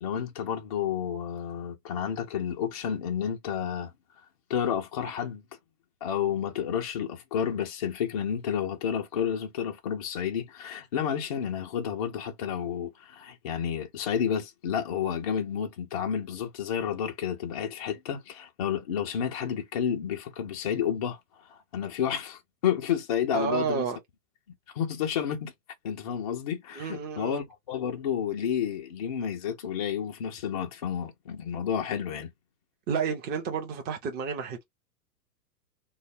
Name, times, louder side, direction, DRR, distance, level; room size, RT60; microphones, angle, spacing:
voice 1, 0.0-3.9 4.5-5.4 6.0-23.9 24.7-25.5 25.8-32.3, left 8 dB, 25° left, 0.3 m, -31 dB
voice 2, 23.3-24.0 26.7-27.4 32.9-34.6, right 6 dB, 20° right, 0.8 m, -30 dB
3.1 x 2.2 x 4.1 m
hypercardioid pair, 135°, 50 cm